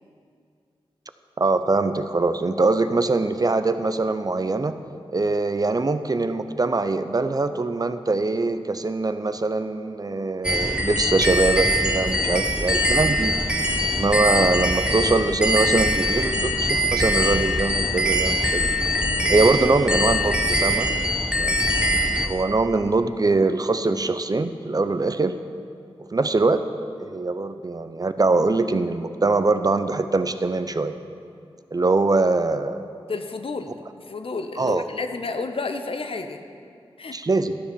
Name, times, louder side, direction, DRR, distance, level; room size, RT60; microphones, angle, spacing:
voice 1, 1.4-4.8 5.1-13.3 13.9-18.7 19.3-20.9 21.4-21.7 22.2-25.4 26.0-26.6 27.0-31.0 31.7-32.9 34.6-34.8 37.1-37.6, right 3 dB, 40° right, 10 dB, 0.6 m, -23 dB
sound 1, 10.4-22.3, equal, 10° right, 1.1 m, -22 dB
voice 2, 33.1-36.4 37.0-37.2, left 3 dB, 65° left, 7 dB, 0.8 m, -31 dB
12.5 x 7.1 x 6.1 m, 2.4 s
cardioid pair, 40°, 10 cm